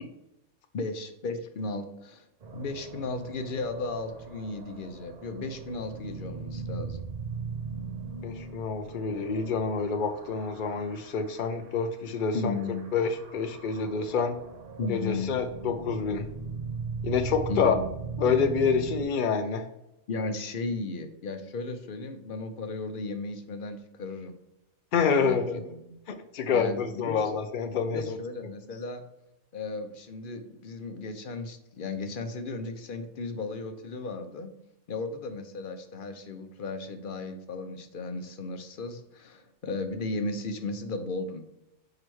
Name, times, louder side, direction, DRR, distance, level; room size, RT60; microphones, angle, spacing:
voice 1, 0.7-2.3 2.5-7.1 12.3-12.8 14.8-15.3 17.5-17.9 20.1-24.3 25.2-26.0 26.5-27.2 27.9-29.1 29.5-34.5 34.9-41.4, left 3 dB, 50° left, 7 dB, 0.7 m, -35 dB
sound 1, 2.4-11.9 12.1-19.0, right 5 dB, 45° right, 0.5 m, -39 dB
voice 2, 8.2-12.6 12.9-14.3 14.9-16.3 17.0-17.7 18.2-19.7 24.9-25.6 26.1-28.2, left 5 dB, 75° left, 7 dB, 0.4 m, -27 dB
4.8 x 4.8 x 4.7 m, 0.87 s
omnidirectional pair, 1.5 m